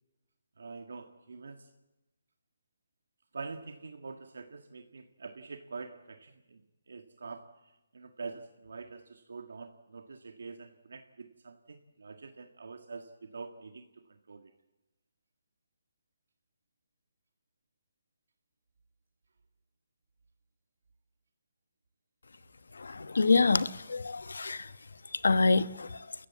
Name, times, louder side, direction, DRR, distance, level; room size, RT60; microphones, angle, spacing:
voice 1, 0.6-1.7 3.3-7.5 7.9-14.5, right 4 dB, 75° right, 1.7 m, -45 dB
voice 2, 22.8-24.7 25.2-26.1, left 3 dB, 90° left, 1.2 m, -26 dB
30.0 x 15.0 x 8.4 m
hypercardioid pair, 170°, 0 cm